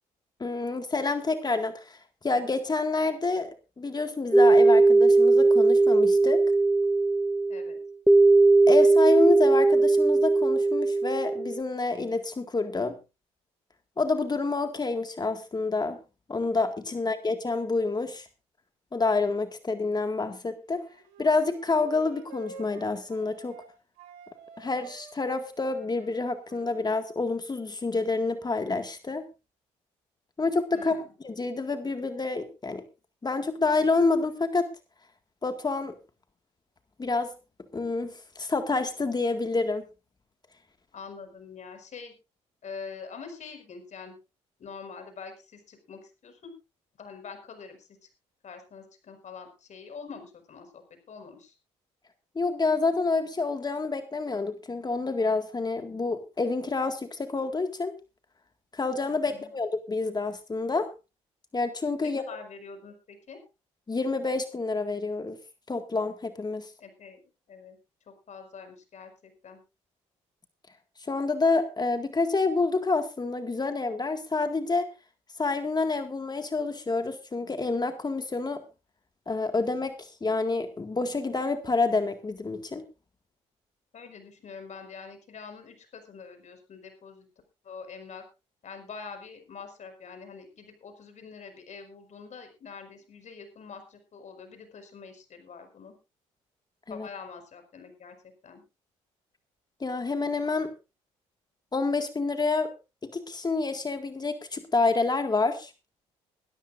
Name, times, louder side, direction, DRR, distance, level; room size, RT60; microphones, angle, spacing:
voice 1, 0.4-2.0 2.2-3.5 3.8-6.4 8.7-13.0 14.0-16.0 16.3-18.3 18.9-20.8 21.2-23.6 24.6-29.2 30.4-31.0 31.2-32.8 33.2-34.7 35.4-35.9 37.0-37.3 37.7-39.8 52.4-57.9 58.7-60.9 61.5-62.2 63.9-65.4 65.7-66.7 71.1-74.9 75.4-78.6 79.3-82.8 96.9-97.1 99.8-100.7 101.7-102.7 103.1-105.7, left 3 dB, 30° left, 7 dB, 1.9 m, -28 dB
sound 1, 4.3-11.6, right 3 dB, ahead, 0.7 m, -19 dB
Wind instrument woodwind instrument, 20.6-23.7 24.0-27.3, right 4 dB, 80° right, 3.5 m, -50 dB
voice 2, 30.7-31.1 40.9-42.1 42.6-44.2 44.6-46.5 47.0-48.1 48.4-51.5 59.3-59.6 62.0-63.4 66.8-67.2 67.5-67.8 68.1-69.6 83.9-87.3 87.6-88.2 88.6-95.9 96.9-98.2 98.4-98.6, left 5 dB, 55° left, 6 dB, 5.2 m, -45 dB
21.0 x 13.5 x 2.6 m, 0.29 s
hypercardioid pair, 55°, 15 cm